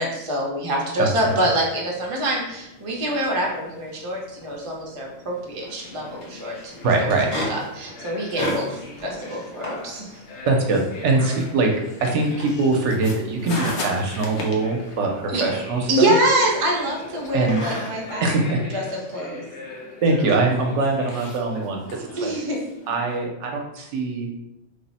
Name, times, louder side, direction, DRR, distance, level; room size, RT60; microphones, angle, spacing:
voice 1, 0.0-7.1 7.5-10.1 15.3-15.4 15.9-18.2 18.5-19.4 22.2-22.6, right 1 dB, 35° right, -2 dB, 0.6 m, -25 dB
sound 1, 0.9-18.3, left 1 dB, 55° left, 1.4 m, -37 dB
sound 2, 5.6-23.3, left 3 dB, 75° left, 0.9 m, -39 dB
voice 2, 6.8-7.3 10.5-11.7 12.0-16.1 17.3-17.6 18.2-18.6 20.0-22.3 22.9-24.4, right 3 dB, 80° right, 2 dB, 0.9 m, -22 dB
3.3 x 2.0 x 4.0 m, 0.89 s
omnidirectional pair, 1.2 m